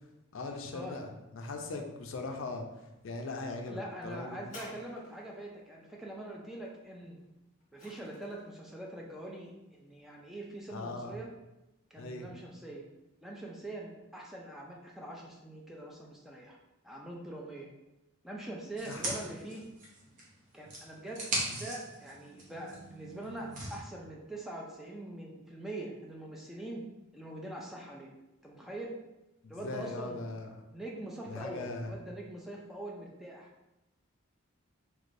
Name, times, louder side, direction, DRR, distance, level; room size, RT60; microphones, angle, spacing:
voice 1, 0.3-4.4 10.7-11.2 12.0-12.4 18.9-19.0 21.4-21.6 29.4-30.6 31.3-31.9, left 3 dB, 65° left, 3 dB, 0.4 m, -40 dB
voice 2, 3.7-7.2 7.7-11.3 11.9-12.8 13.2-16.6 16.8-17.7 18.2-19.6 20.5-21.2 21.5-26.8 27.1-28.1 28.4-28.9 29.5-30.3 30.7-33.5, right 1 dB, ahead, -3 dB, 0.3 m, -43 dB
sound 1, 4.4-5.5 7.2-8.6 9.4-9.5, left 1 dB, 35° left, 1.0 m, -51 dB
sound 2, 18.8-20.3 20.7-23.8, right 1 dB, 35° right, 0.8 m, -39 dB
3.2 x 3.1 x 2.5 m, 0.98 s
head